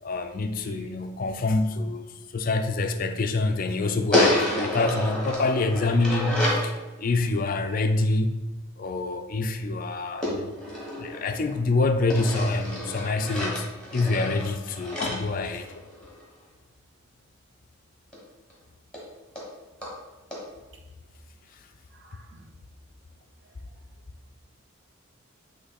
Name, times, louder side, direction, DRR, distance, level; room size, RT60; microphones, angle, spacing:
voice 1, 0.0-2.0 2.3-8.4 8.8-10.5 11.0-13.7 13.9-15.7, left 3 dB, 40° left, 0.4 m, -26 dB
voice 2, 0.6-0.9 7.7-7.8 21.9-22.5 23.5-23.6, right 3 dB, 55° right, 0.8 m, -54 dB
sound 1, 4.1-6.7 10.2-11.6 12.1-16.2 18.1-18.2 18.5-18.6 18.9-19.0 19.4-19.5 19.8-19.9 20.3-20.4, left 1 dB, 5° left, 1.3 m, -29 dB
7.8 x 3.2 x 4.1 m
head